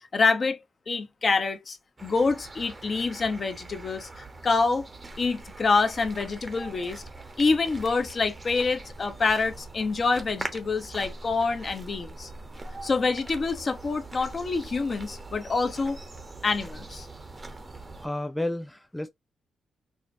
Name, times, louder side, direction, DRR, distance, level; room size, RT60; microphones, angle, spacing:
voice 1, 0.1-0.6 0.9-4.9 5.2-7.0 7.4-12.3 12.8-16.0 16.4-17.1, left 4 dB, 45° left, 0.8 m, -26 dB
sound 1, 2.0-18.1, right 2 dB, 30° right, 0.8 m, -42 dB
voice 2, 18.0-19.1, left 1 dB, 5° left, 0.3 m, -31 dB
4.6 x 2.1 x 2.6 m
cardioid pair, 75°, 0 cm